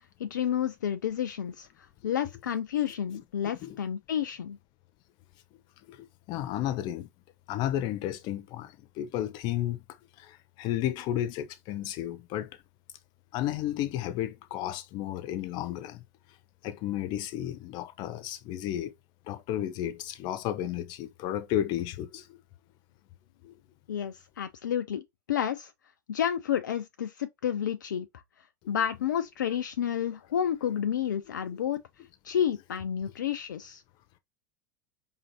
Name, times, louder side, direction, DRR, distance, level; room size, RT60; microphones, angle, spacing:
voice 1, 0.2-1.7 2.0-4.6 23.9-25.0 25.3-25.7 26.1-28.1 28.7-31.8 32.2-33.8, left 9 dB, 70° left, 0.4 m, -30 dB
voice 2, 5.9-7.1 7.5-9.8 10.2-12.5 13.3-16.0 16.6-18.9 19.3-22.4 23.4-23.5 31.5-31.6, left 12 dB, 45° left, 0.7 m, -33 dB
5.5 x 2.6 x 2.9 m
figure-of-eight pair, 85°, 10 cm